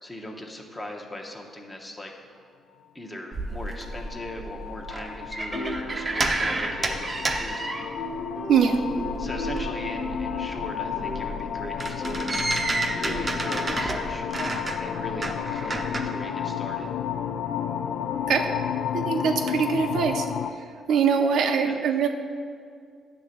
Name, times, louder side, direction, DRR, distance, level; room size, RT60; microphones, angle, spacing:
voice 1, 0.0-2.1 2.9-8.3 9.2-14.2 14.8-16.9 21.6-21.8, left 1 dB, 15° left, 1 dB, 0.9 m, -39 dB
sound 1, 3.3-8.3 8.6-16.0, right 2 dB, 25° right, 0.6 m, -31 dB
sound 2, 3.6-20.5, left 9 dB, 75° left, 0.3 m, -32 dB
sound 3, 5.5-16.7, left 1 dB, 55° left, 1.4 m, -39 dB
voice 2, 18.9-20.3 20.9-22.1, right 6 dB, 70° right, 5 dB, 0.5 m, -22 dB
9.8 x 3.3 x 6.6 m, 2.2 s
cardioid pair, 125°, 0 cm